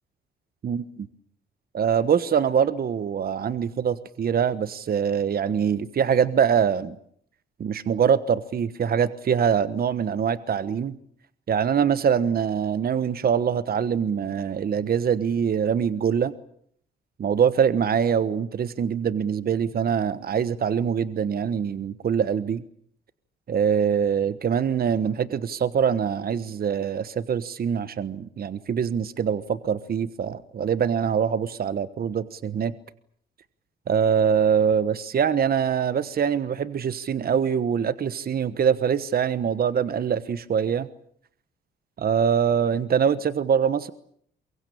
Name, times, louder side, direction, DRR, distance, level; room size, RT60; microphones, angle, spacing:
voice 1, 0.6-1.1 1.7-6.9 7.6-11.0 11.5-16.3 17.2-22.6 23.5-32.7 33.9-40.9 42.0-43.9, right 7 dB, 50° right, 14 dB, 1.3 m, -24 dB
23.5 x 23.0 x 8.7 m, 0.65 s
cardioid pair, 90°, 20 cm